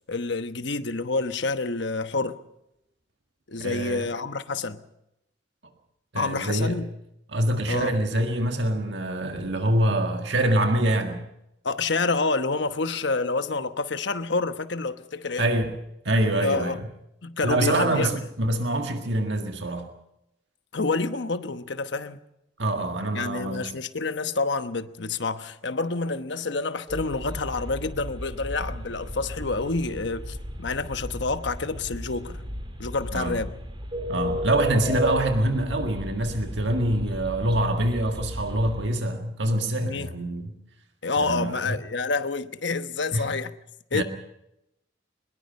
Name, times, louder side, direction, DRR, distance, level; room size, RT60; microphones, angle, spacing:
voice 1, 0.1-2.4 3.5-4.8 6.1-6.9 7.7-7.9 11.6-15.5 16.4-16.8 17.2-18.2 20.7-22.2 23.1-32.4 32.8-33.5 39.8-40.1 41.0-43.5 43.9-44.0, left 3 dB, 65° left, 1.1 m, -28 dB
voice 2, 3.6-4.1 6.1-6.8 7.3-11.2 15.4-15.8 16.1-16.8 17.4-19.9 22.6-23.7 33.1-33.4 34.1-40.6 41.2-41.8 43.1-43.3 43.9-44.0, right 1 dB, 65° right, 1.8 m, -25 dB
sound 1, 26.9-38.8, equal, 25° right, 3.4 m, -34 dB
23.5 x 21.5 x 5.5 m
head